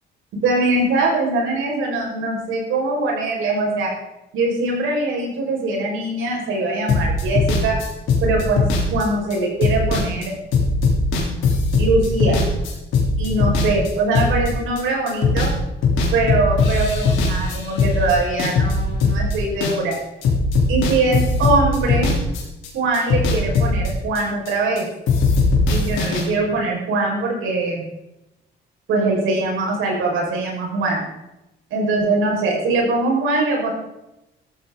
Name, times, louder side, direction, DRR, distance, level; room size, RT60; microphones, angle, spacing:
voice 1, 0.4-3.9 4.3-7.8 8.2-8.6 8.9-10.3 11.8-12.4 13.2-15.5 16.1-20.0 20.7-22.1 22.7-24.9 25.7-27.9 28.9-31.1 31.7-33.7, right 2 dB, 85° right, -1 dB, 5.5 m, -22 dB
sound 1, 6.9-15.6 15.8-20.0 20.2-24.8 25.1-26.2, left 3 dB, 85° left, 3.6 m, -19 dB
14.0 x 14.0 x 3.9 m, 0.93 s
cardioid pair, 90°, 20 cm